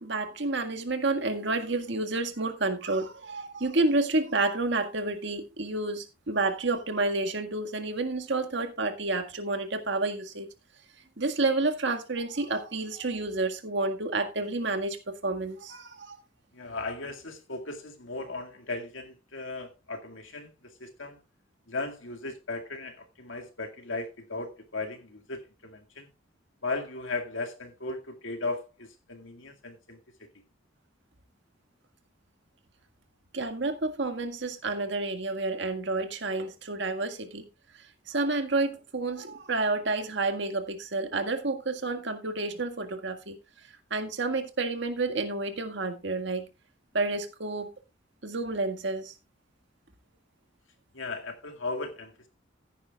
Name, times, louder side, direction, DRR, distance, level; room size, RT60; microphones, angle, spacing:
voice 1, 0.0-10.5 11.2-15.0 15.2-16.2 33.3-37.4 38.1-43.4 43.9-46.4 46.9-47.7 48.2-49.1, right 3 dB, 60° right, 1.8 m, -30 dB
voice 2, 16.5-21.2 21.7-26.1 26.6-30.3 50.9-52.3, left 3 dB, 80° left, 2.1 m, -37 dB
15.5 x 9.9 x 2.3 m
head